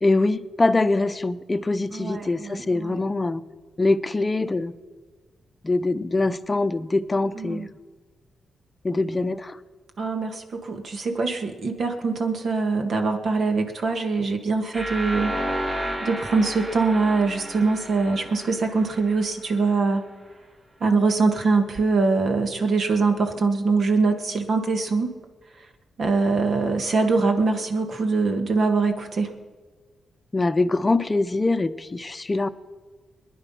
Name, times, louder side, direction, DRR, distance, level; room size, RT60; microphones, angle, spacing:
voice 1, 0.0-3.4 3.8-4.8 5.6-7.7 8.8-9.6 30.3-32.5, left 2 dB, 25° left, 11 dB, 0.7 m, -23 dB
voice 2, 1.9-3.0 7.4-7.7 10.0-15.4 16.0-20.1 20.8-25.1 26.0-29.3, right 4 dB, 60° right, 5 dB, 1.9 m, -23 dB
sound 1, 14.7-19.6, right 1 dB, 35° right, 3.2 m, -32 dB
22.0 x 10.5 x 5.7 m, 1.4 s
cardioid pair, 75°, 0 cm